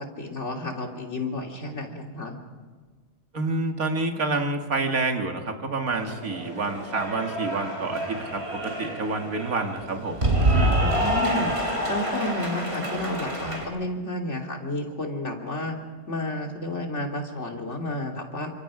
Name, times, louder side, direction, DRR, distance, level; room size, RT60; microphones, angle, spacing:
voice 1, 0.2-2.4 10.8-11.5 11.9-15.8 16.1-18.5, left 2 dB, 55° left, 2 dB, 3.0 m, -31 dB
voice 2, 3.3-10.9, right 3 dB, 90° right, 4 dB, 2.5 m, -28 dB
Cheering / Applause, 5.9-13.6, right 1 dB, 45° right, 4.2 m, -27 dB
29.0 x 26.0 x 5.0 m, 1.4 s
omnidirectional pair, 1.4 m